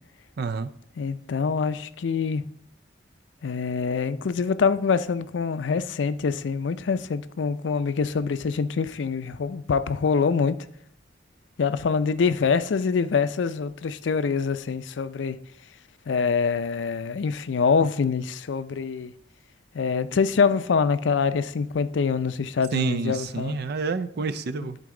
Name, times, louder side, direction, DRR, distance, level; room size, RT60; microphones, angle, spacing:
voice 1, 0.4-0.7 22.7-24.8, right 4 dB, 60° right, 0.5 m, -28 dB
voice 2, 1.0-2.4 3.4-10.6 11.6-15.4 16.1-19.1 19.7-23.6, left 5 dB, 85° left, 0.4 m, -25 dB
12.0 x 4.0 x 3.8 m
head